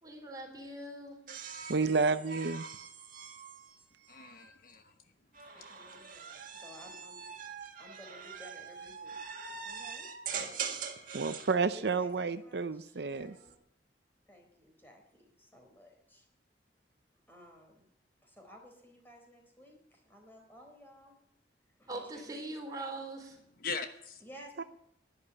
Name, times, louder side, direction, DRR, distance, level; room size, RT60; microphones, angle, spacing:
voice 1, 0.0-1.2 21.9-23.4, right 2 dB, 20° right, 1 dB, 3.8 m, -42 dB
sound 1, 1.3-4.5 5.3-11.6 13.0-13.5, right 6 dB, 50° right, 2.0 m, -43 dB
voice 2, 1.7-2.7 11.1-13.3 24.6-24.7, right 4 dB, 65° right, 11 dB, 0.6 m, -30 dB
voice 3, 4.1-4.9 5.5-5.9 23.6-24.2, left 4 dB, 50° left, 7 dB, 1.1 m, -41 dB
voice 4, 5.7-7.3 7.8-9.2 9.6-10.1 11.6-13.6 14.3-16.2 17.3-17.8 18.2-21.2 21.8-22.4 24.2-24.7, equal, 10° left, 2 dB, 4.1 m, -55 dB
12.0 x 11.0 x 8.3 m, 0.78 s
head